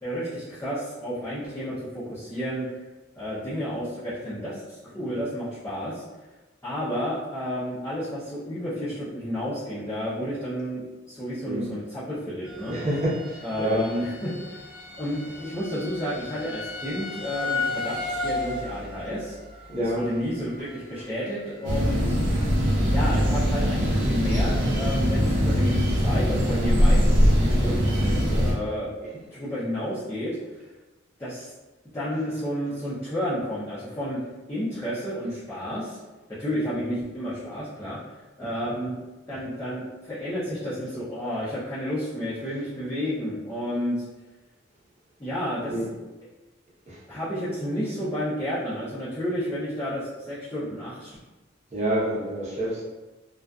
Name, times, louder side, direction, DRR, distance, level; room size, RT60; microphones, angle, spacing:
voice 1, 0.0-2.6 3.1-6.0 6.6-12.8 13.4-14.7 15.0-19.3 19.8-22.2 22.8-27.0 27.4-28.9 29.3-30.6 31.2-31.5 31.9-34.2 34.5-36.0 36.4-38.0 38.4-39.0 39.3-44.0 45.2-45.8 47.1-51.2, equal, 15° left, -13 dB, 0.6 m, -31 dB
sound 1, 12.4-23.1 23.4-23.9 24.4-24.5 24.9-25.0, left 3 dB, 5° right, 1.1 m, -36 dB
voice 2, 12.7-13.8 19.7-20.1 29.0-29.1 45.7-46.0 46.9-47.0 51.7-52.8, right 1 dB, 40° right, -6 dB, 0.8 m, -28 dB
sound 2, 21.6-28.5, equal, 80° right, 0.6 m, -22 dB
2.4 x 2.4 x 2.2 m, 1.2 s
head